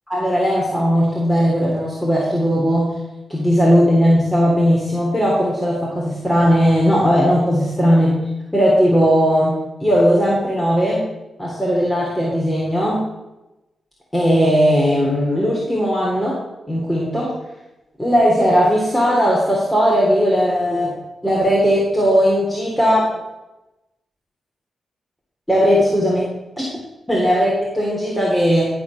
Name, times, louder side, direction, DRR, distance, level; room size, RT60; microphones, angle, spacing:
voice 1, 0.1-2.9 3.3-8.1 8.5-9.5 9.8-11.0 11.4-13.0 14.1-16.3 16.7-17.3 18.0-20.9 21.2-23.1 25.5-26.3 26.6-26.7 27.1-28.7, equal, 5° left, -5 dB, 3.5 m, -17 dB
13.5 x 4.9 x 6.4 m, 0.97 s
cardioid pair, 60°, 0 cm